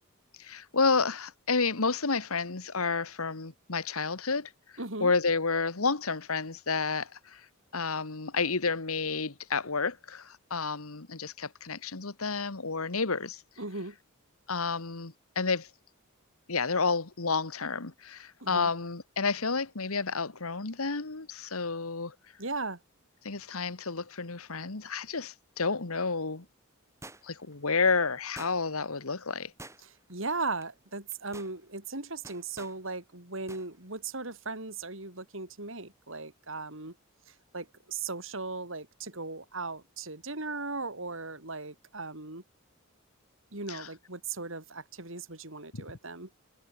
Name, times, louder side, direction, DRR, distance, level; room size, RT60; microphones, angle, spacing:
voice 1, 0.4-4.5 5.0-7.4 7.7-13.4 14.5-15.7 16.5-22.1 23.2-26.4 27.2-29.5 43.7-43.9 45.7-45.8, left 4 dB, 80° left, 1.7 m, -30 dB
voice 2, 4.8-5.1 13.6-14.0 18.4-18.7 22.4-22.8 29.8-36.9 37.5-42.4 43.5-46.3, right 3 dB, 60° right, 3.7 m, -37 dB
sound 1, 27.0-27.5 28.4-28.9 29.6-30.1 30.4-30.6 31.1-31.5 32.2-32.8 33.5-33.7 34.0-34.1, right 2 dB, 15° right, 6.4 m, -48 dB
head